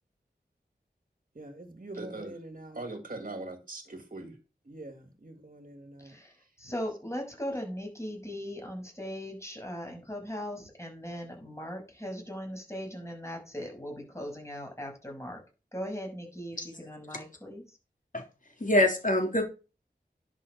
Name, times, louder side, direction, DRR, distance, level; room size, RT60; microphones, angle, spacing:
voice 1, 1.4-4.4 4.7-6.5, right 2 dB, 50° right, 6 dB, 1.8 m, -42 dB
voice 2, 6.6-15.4 15.7-17.6, equal, 15° left, 1 dB, 6.1 m, -39 dB
voice 3, 18.6-19.4, left 1 dB, 50° left, 3 dB, 3.4 m, -25 dB
11.0 x 5.6 x 6.4 m, 0.32 s
wide cardioid pair, 55°, 18 cm